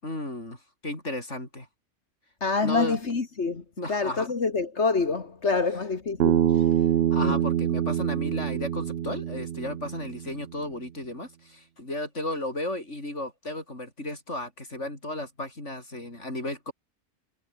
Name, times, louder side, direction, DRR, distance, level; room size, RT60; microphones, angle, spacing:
voice 1, 0.0-1.7 2.6-3.0 3.8-4.3 7.1-16.7, left 1 dB, 90° left, 7.7 m, -34 dB
voice 2, 2.4-6.7 7.2-7.4, left 4 dB, 70° left, 2.4 m, -27 dB
Bass guitar, 6.2-10.5, right 10 dB, 65° right, 0.9 m, -25 dB
omnidirectional pair, 1.2 m